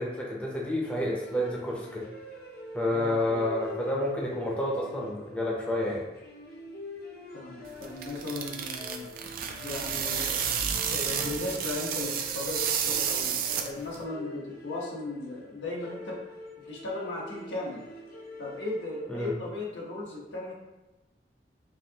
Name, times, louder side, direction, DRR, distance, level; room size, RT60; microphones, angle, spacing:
voice 1, 0.0-2.0 2.7-6.1 19.1-19.4, left 1 dB, 5° left, -4 dB, 0.6 m, -29 dB
sound 1, 0.8-19.3, left 2 dB, 55° left, 0.7 m, -45 dB
voice 2, 2.9-3.4 7.3-9.1 9.6-10.5 10.9-16.2 16.7-17.8 18.4-20.5, left 2 dB, 85° left, -4 dB, 1.1 m, -36 dB
sound 2, 7.7-14.0, right 7 dB, 50° right, 0.4 m, -31 dB
4.6 x 2.8 x 2.8 m, 1.0 s
head